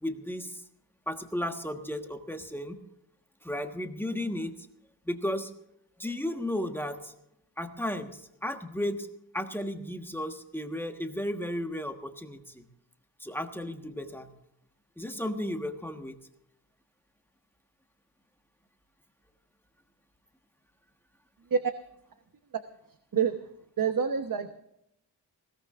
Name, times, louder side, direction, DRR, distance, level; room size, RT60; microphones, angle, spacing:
voice 1, 0.0-0.6 1.1-2.8 3.4-4.5 5.1-5.5 6.0-7.1 7.6-9.1 9.3-12.7 13.2-14.3 15.0-16.2, left 1 dB, 5° left, 5 dB, 1.4 m, -34 dB
voice 2, 23.8-24.5, right 7 dB, 50° right, 7 dB, 1.1 m, -27 dB
20.5 x 17.0 x 2.5 m, 0.78 s
wide cardioid pair, 110°, 42 cm